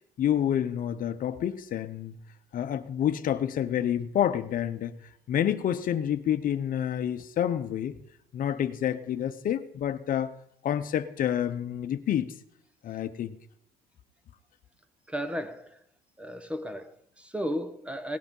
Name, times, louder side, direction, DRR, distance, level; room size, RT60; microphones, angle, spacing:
voice 1, 0.2-2.2 2.5-4.9 5.3-8.0 8.3-10.3 10.6-12.3 12.8-13.4, left 10 dB, 55° left, 0.9 m, -28 dB
voice 2, 15.1-15.8 16.2-18.2, equal, 5° right, 1.1 m, -34 dB
18.0 x 9.9 x 5.5 m
cardioid pair, 110°, 17 cm